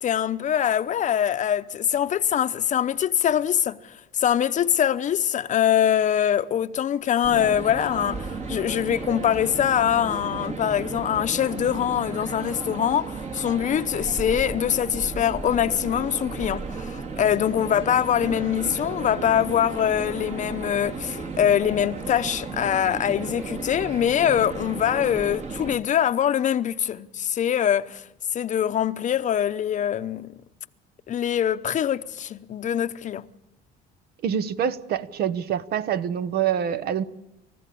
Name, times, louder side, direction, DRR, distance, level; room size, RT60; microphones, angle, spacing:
voice 1, 0.0-3.8 4.1-28.0 28.3-30.3 31.1-33.3, left 10 dB, 45° left, 0.8 m, -23 dB
sound 1, 7.2-25.8, right 4 dB, 40° right, 2.2 m, -34 dB
voice 2, 34.2-37.0, right 8 dB, 60° right, 1.0 m, -26 dB
29.5 x 15.0 x 8.5 m
cardioid pair, 115°, 18 cm